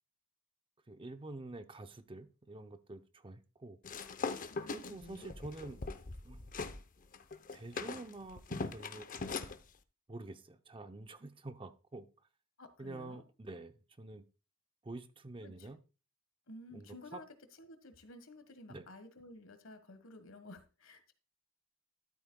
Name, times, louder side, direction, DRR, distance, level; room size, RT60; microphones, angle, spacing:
voice 1, 0.9-3.8 4.3-5.9 6.2-6.5 7.5-9.1 10.1-12.1 12.8-14.3 14.8-15.8 16.7-17.2 18.7-18.8, right 2 dB, 25° right, 0.6 m, -48 dB
sound 1, 3.8-6.8 7.1-9.6, left 4 dB, 40° left, 0.7 m, -41 dB
voice 2, 4.5-5.3 12.6-13.2 15.4-15.7 16.5-17.3 17.6-21.1, left 1 dB, 65° left, 1.5 m, -53 dB
12.5 x 8.5 x 2.3 m
head